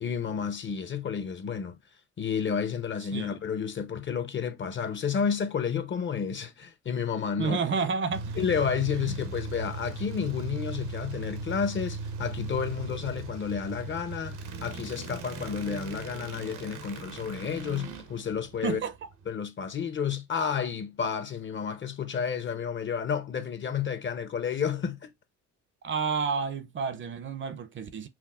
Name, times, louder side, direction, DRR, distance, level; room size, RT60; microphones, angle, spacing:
voice 1, 0.0-1.8 2.2-7.6 8.4-18.8 19.3-25.1, left 7 dB, 40° left, 0.7 m, -31 dB
voice 2, 7.4-8.5 9.1-9.2 18.6-19.1 25.8-28.1, right 5 dB, 40° right, 0.6 m, -30 dB
sound 1, 8.1-19.2, right 3 dB, 80° right, 0.9 m, -38 dB
5.9 x 2.1 x 2.4 m
cardioid pair, 90°, 30 cm